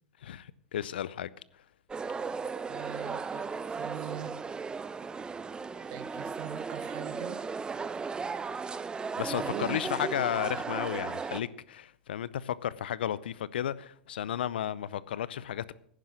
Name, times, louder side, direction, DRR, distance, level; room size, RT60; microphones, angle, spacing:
voice 1, 0.2-1.3 9.2-15.7, left 10 dB, 75° left, 0.6 m, -33 dB
sound 1, 1.9-11.4, right 5 dB, 15° right, 0.7 m, -36 dB
voice 2, 2.7-4.4 5.9-7.4 9.3-9.8, right 12 dB, 55° right, 1.0 m, -42 dB
11.0 x 10.0 x 6.3 m
hypercardioid pair, 100°, 6 cm